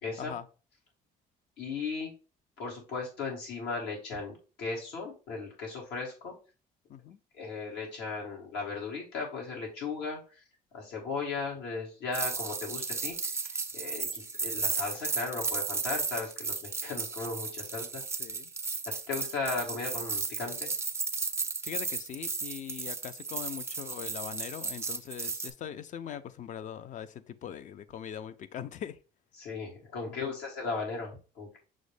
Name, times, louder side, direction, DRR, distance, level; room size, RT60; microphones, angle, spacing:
voice 1, 0.0-0.3 1.6-2.1 2.6-6.3 7.3-10.2 10.7-18.0 19.1-20.7 29.3-31.6, left 4 dB, 85° left, 1.6 m, -36 dB
sound 1, 12.1-25.5, right 4 dB, 15° right, 0.4 m, -34 dB
voice 2, 18.2-18.5 21.6-29.0 30.1-30.4, left 9 dB, 45° left, 0.4 m, -41 dB
6.2 x 2.1 x 3.3 m
cardioid pair, 110°, 17 cm